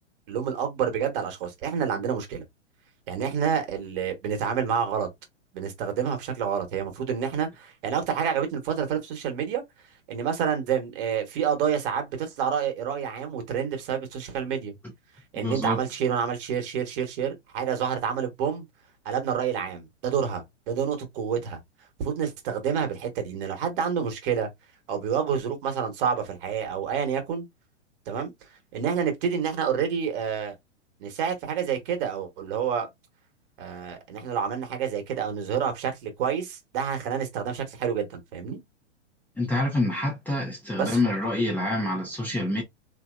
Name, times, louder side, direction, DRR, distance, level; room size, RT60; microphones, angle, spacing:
voice 1, 0.3-2.4 3.1-5.1 5.5-9.6 10.1-14.7 15.3-18.6 19.0-21.6 22.0-24.5 24.9-27.5 28.1-28.3 28.7-30.5 31.0-32.9 33.6-38.6 40.7-41.0, right 7 dB, 50° right, 1.4 m, -28 dB
voice 2, 15.4-15.8 39.4-42.6, left 2 dB, 5° left, 0.8 m, -27 dB
3.3 x 2.9 x 2.4 m
hypercardioid pair, 110°, 36 cm